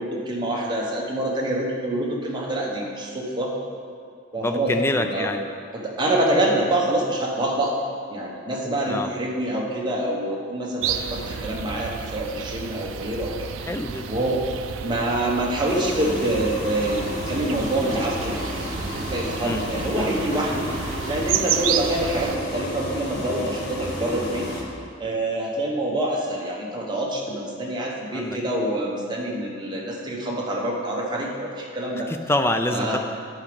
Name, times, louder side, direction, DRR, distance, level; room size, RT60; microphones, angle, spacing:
voice 1, 0.0-3.5 4.3-5.3 5.7-7.7 8.1-13.4 14.1-14.4 14.8-18.5 18.9-20.7 21.1-24.5 25.0-32.1 32.7-33.0, right 1 dB, 25° right, -3 dB, 1.2 m, -26 dB
voice 2, 4.4-5.5 8.9-9.1 13.7-14.1 19.4-19.6 28.1-28.4 32.1-33.0, left 1 dB, 10° left, 7 dB, 0.4 m, -26 dB
sound 1, 10.8-22.4, right 8 dB, 75° right, 0.4 m, -31 dB
sound 2, 15.6-24.6, left 1 dB, 50° left, 1.9 m, -32 dB
10.0 x 5.1 x 5.1 m, 2.3 s
head